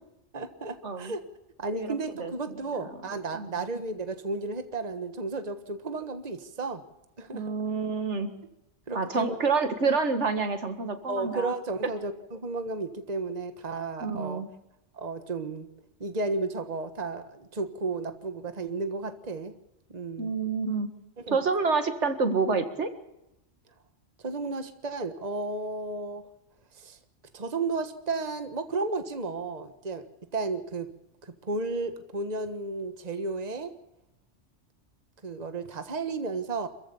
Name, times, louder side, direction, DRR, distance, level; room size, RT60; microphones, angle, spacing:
voice 1, 0.3-1.2 1.6-6.8 7.2-7.5 8.9-9.4 11.1-14.4 14.9-15.7 16.0-19.5 19.9-20.3 21.2-21.4 24.2-26.3 26.7-27.0 27.3-30.1 30.3-30.9 31.2-33.7 35.2-36.7, right 3 dB, 35° right, 8 dB, 1.4 m, -33 dB
voice 2, 1.7-2.8 3.3-3.5 7.3-8.3 8.9-11.5 14.0-14.5 20.2-20.9 21.3-22.9, right 4 dB, 70° right, 8 dB, 2.0 m, -28 dB
26.5 x 15.0 x 7.0 m, 0.90 s
omnidirectional pair, 1.2 m